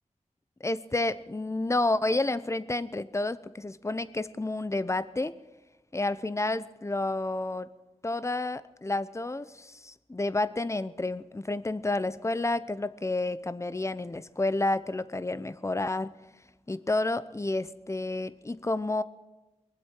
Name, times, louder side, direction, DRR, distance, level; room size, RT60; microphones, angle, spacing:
voice 1, 0.6-5.3 5.9-7.7 8.0-16.1 16.7-19.0, left 2 dB, 20° left, 15 dB, 0.7 m, -30 dB
23.0 x 8.0 x 6.6 m, 1.1 s
wide cardioid pair, 65°, 13 cm